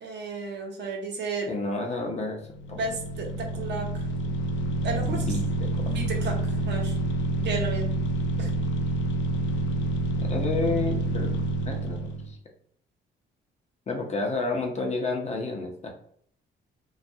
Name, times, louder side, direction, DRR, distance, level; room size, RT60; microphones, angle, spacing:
voice 1, 0.0-1.5 2.7-4.1 4.8-5.3 5.9-7.0 7.4-7.9 8.4-8.5, right 3 dB, 60° right, 1 dB, 0.8 m, -33 dB
voice 2, 1.5-2.4 2.7-2.9 5.0-5.8 10.2-12.4 13.9-15.9, left 3 dB, 35° left, 1 dB, 0.6 m, -31 dB
sound 1, 2.4-12.3, right 2 dB, 70° left, 0.4 m, -28 dB
2.3 x 2.2 x 2.6 m, 0.62 s
cardioid pair, 90°, 20 cm